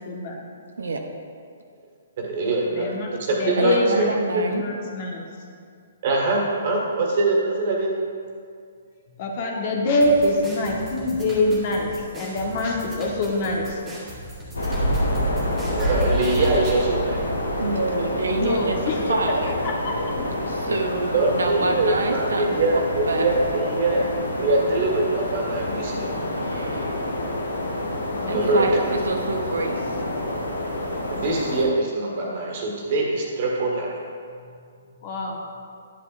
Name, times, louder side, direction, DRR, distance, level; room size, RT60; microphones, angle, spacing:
voice 1, 0.0-0.4 2.6-5.4 9.2-13.8 18.4-19.2 19.6-20.1 28.1-28.7 34.4-34.5 34.8-35.5, left 1 dB, 45° left, -1 dB, 1.3 m, -25 dB
voice 2, 2.2-4.0 4.3-4.4 6.0-8.0 15.7-17.3 21.1-24.0 24.4-26.1 28.2-28.8 31.1-34.0, right 2 dB, 50° right, -1 dB, 1.8 m, -23 dB
voice 3, 3.6-4.6 17.6-18.8 19.1-19.6 20.5-23.3 26.3-27.0 28.3-30.0, right 3 dB, 75° right, 4 dB, 0.7 m, -27 dB
sound 1, 10.0-16.9, equal, 15° right, 1.8 m, -39 dB
sound 2, 14.5-31.7, left 1 dB, 85° left, 1.3 m, -27 dB
10.0 x 7.8 x 2.6 m, 2.3 s
figure-of-eight pair, 130°, 0 cm